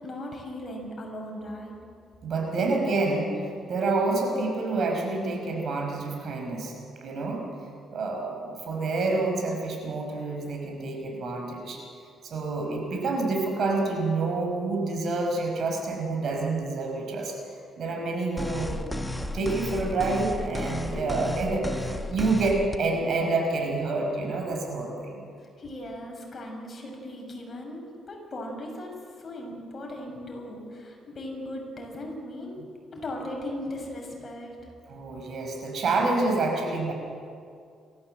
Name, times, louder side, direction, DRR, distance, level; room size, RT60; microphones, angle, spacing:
voice 1, 0.0-1.7 25.6-32.6 32.9-34.6, left 1 dB, 40° left, 1 dB, 6.0 m, -38 dB
voice 2, 2.2-6.7 7.0-7.4 7.9-11.8 12.2-17.4 17.8-18.8 19.3-25.2 34.9-36.9, right 3 dB, 60° right, 2 dB, 5.5 m, -28 dB
sound 1, 18.4-22.8, left 1 dB, 10° left, 1.5 m, -33 dB
28.0 x 14.0 x 7.8 m, 2.4 s
cardioid pair, 90°, 0 cm